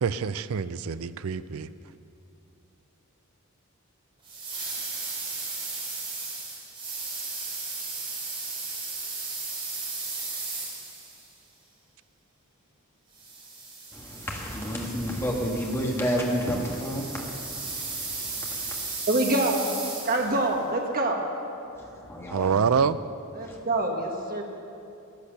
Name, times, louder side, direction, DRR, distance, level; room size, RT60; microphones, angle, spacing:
voice 1, 0.0-1.7 22.3-23.0, right 6 dB, 70° right, 14 dB, 0.4 m, -26 dB
sound 1, 4.2-11.3 13.2-20.4, right 3 dB, 25° right, 2.9 m, -35 dB
voice 2, 13.9-19.0 21.7-22.5 23.4-23.6, equal, 10° left, -2 dB, 1.8 m, -31 dB
voice 3, 19.1-19.6 20.0-21.2 23.3-24.4, right 2 dB, 40° right, 1 dB, 1.6 m, -25 dB
14.5 x 10.0 x 6.7 m, 2.7 s
head